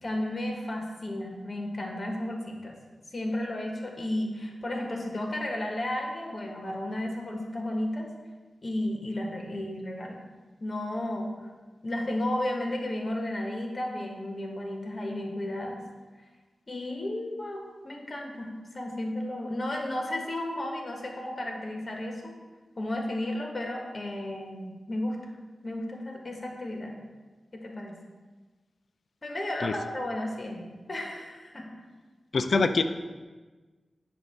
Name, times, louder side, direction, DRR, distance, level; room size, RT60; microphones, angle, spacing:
voice 1, 0.0-2.7 3.1-8.1 8.6-10.2 10.6-11.3 11.8-15.8 16.7-22.3 22.8-25.2 25.6-27.0 27.5-27.9 29.2-31.7, left 1 dB, 45° left, 1 dB, 1.4 m, -33 dB
voice 2, 32.3-32.8, left 4 dB, 70° left, 9 dB, 0.4 m, -24 dB
7.8 x 2.7 x 5.7 m, 1.3 s
cardioid pair, 50°, 0 cm